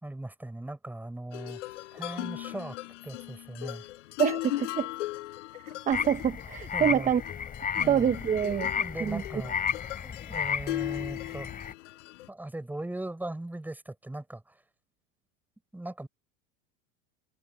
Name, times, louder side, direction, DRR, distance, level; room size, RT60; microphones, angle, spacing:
voice 1, 0.0-1.6 1.9-2.8 3.0-3.8 6.7-7.1 7.8-8.1 8.7-9.6 10.0-11.5 12.3-14.6 15.7-16.1, right 1 dB, 5° right, 5.3 m, -39 dB
sound 1, 1.3-12.3, left 17 dB, 85° left, 4.7 m, -38 dB
voice 2, 4.2-4.9 5.6-7.2 7.9-8.7 9.0-9.2, right 8 dB, 20° right, 1.0 m, -26 dB
sound 2, 5.9-11.7, left 7 dB, 25° left, 4.9 m, -33 dB
supercardioid pair, 135°, 35 cm